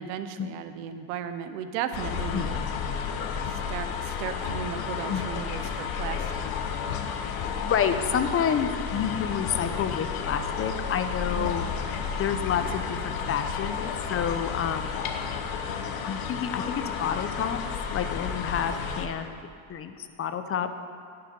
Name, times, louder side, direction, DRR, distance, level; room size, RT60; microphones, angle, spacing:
voice 1, 0.0-2.6 3.5-6.6 11.3-11.5, right 8 dB, 90° right, 10 dB, 0.9 m, -35 dB
sound 1, 1.9-19.1, left 6 dB, 55° left, 1.2 m, -32 dB
voice 2, 7.6-11.6 12.1-15.0 16.0-17.6 17.9-19.3 19.7-20.7, left 8 dB, 30° left, 9 dB, 0.7 m, -29 dB
16.5 x 6.9 x 5.3 m, 2.2 s
cardioid pair, 125°, 42 cm